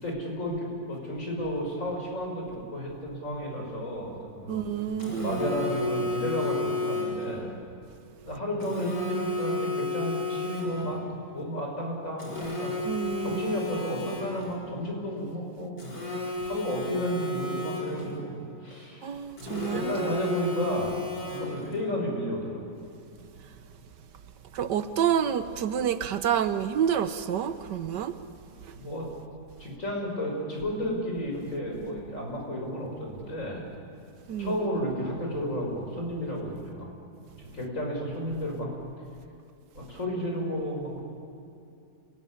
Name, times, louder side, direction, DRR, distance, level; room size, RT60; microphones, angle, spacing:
voice 1, 0.0-4.6 5.2-7.5 8.2-11.0 11.3-12.7 13.2-15.7 16.4-18.3 18.6-19.1 19.7-21.0 21.3-22.6 28.7-29.1 29.6-33.6 34.4-36.9 37.4-38.7 39.7-41.0, equal, 45° left, 6.1 m, -32 dB
voice 2, 4.5-5.4 12.8-13.5 19.0-20.1 20.6-20.8 24.5-28.2 28.6-28.8 34.3-34.6, right 9 dB, 70° right, 1.4 m, -29 dB
Telephone, 5.0-7.3 8.6-11.0 12.2-14.6 15.8-18.2 19.4-21.8, left 2 dB, 70° left, 5.2 m, -33 dB
27.0 x 19.0 x 9.8 m
omnidirectional pair, 2.0 m